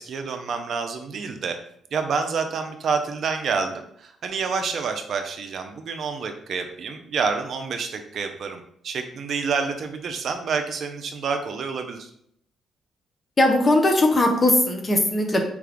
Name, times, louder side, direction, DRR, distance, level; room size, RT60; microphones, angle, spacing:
voice 1, 0.0-1.6 1.9-12.1, right 5 dB, 60° right, 6 dB, 0.5 m, -28 dB
voice 2, 13.4-15.4, left 1 dB, 30° left, 3 dB, 0.7 m, -19 dB
4.6 x 2.4 x 3.4 m, 0.69 s
cardioid pair, 90°, 0 cm